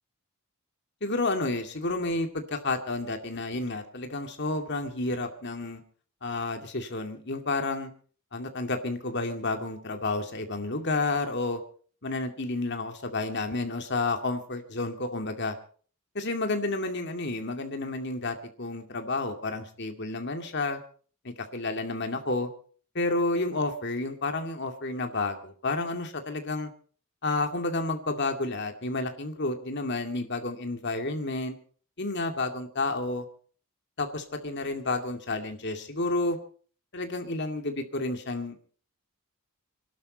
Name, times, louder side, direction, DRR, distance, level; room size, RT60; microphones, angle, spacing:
voice 1, 1.0-5.8 6.2-7.9 8.3-11.6 12.0-15.6 16.1-20.8 21.2-22.5 22.9-26.7 27.2-31.6 32.0-33.3 34.0-36.4 36.9-38.6, left 2 dB, 50° left, 5 dB, 2.3 m, -30 dB
27.0 x 12.0 x 4.1 m, 0.43 s
head